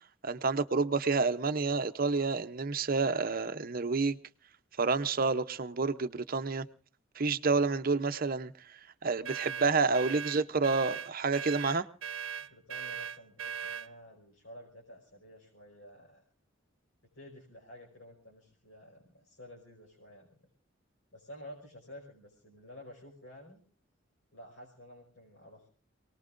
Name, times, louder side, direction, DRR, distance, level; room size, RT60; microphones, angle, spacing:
voice 1, 0.2-4.2 4.8-6.7 7.2-8.5 9.0-11.9, right 4 dB, 45° right, 0.7 m, -29 dB
sound 1, 9.2-13.9, right 7 dB, 85° right, 0.7 m, -39 dB
voice 2, 9.9-10.5 12.4-16.2 17.1-20.4 21.1-23.6 24.3-25.7, left 1 dB, 75° left, 5.1 m, -52 dB
27.0 x 19.0 x 2.5 m
head